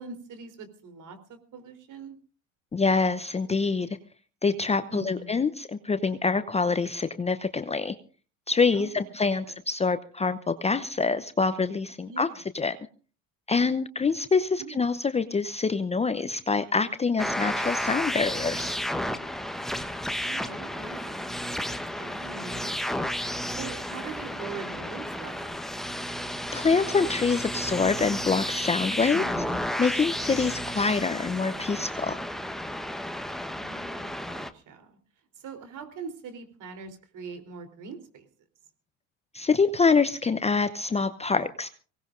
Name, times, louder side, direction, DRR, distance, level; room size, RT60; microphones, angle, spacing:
voice 1, 0.0-2.2 4.9-5.5 8.7-9.1 9.4-9.5 12.0-12.4 14.6-14.9 18.1-18.6 20.2-21.4 21.7-23.1 23.5-25.6 29.1-29.6 33.5-35.0 35.4-38.3, right 4 dB, 50° right, 8 dB, 3.6 m, -43 dB
voice 2, 2.7-3.9 4.4-8.0 8.5-12.8 13.5-18.8 26.5-29.2 29.8-32.2 39.3-41.7, left 4 dB, 15° left, 11 dB, 0.7 m, -25 dB
sound 1, 17.2-34.5, equal, ahead, 1.1 m, -32 dB
23.5 x 18.0 x 2.6 m, 0.39 s
hypercardioid pair, 85°, 40 cm